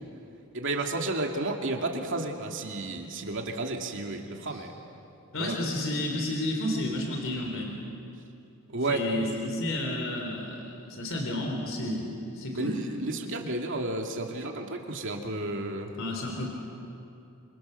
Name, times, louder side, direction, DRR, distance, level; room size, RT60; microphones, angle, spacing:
voice 1, 0.5-4.7 5.3-5.6 8.7-9.0 12.5-15.9, right 2 dB, 60° right, 2 dB, 2.6 m, -32 dB
voice 2, 5.3-7.8 8.9-12.8 16.0-16.5, left 1 dB, 60° left, 1 dB, 3.8 m, -31 dB
28.0 x 27.0 x 6.8 m, 2.7 s
head